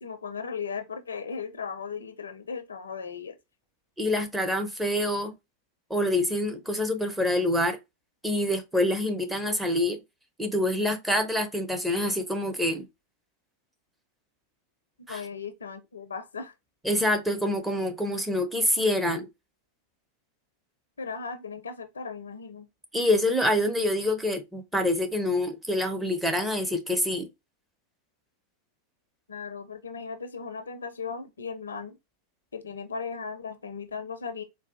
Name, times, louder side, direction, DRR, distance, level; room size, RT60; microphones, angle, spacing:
voice 1, 0.0-3.4 15.1-16.5 21.0-22.7 29.3-32.0 32.5-34.4, left 5 dB, 70° left, 0.4 m, -37 dB
voice 2, 4.0-5.3 5.9-7.8 8.2-10.0 10.4-12.8 15.1-15.2 16.8-19.3 22.9-27.3, left 1 dB, 5° right, 0.6 m, -26 dB
4.0 x 2.2 x 2.5 m
figure-of-eight pair, 90°, 0 cm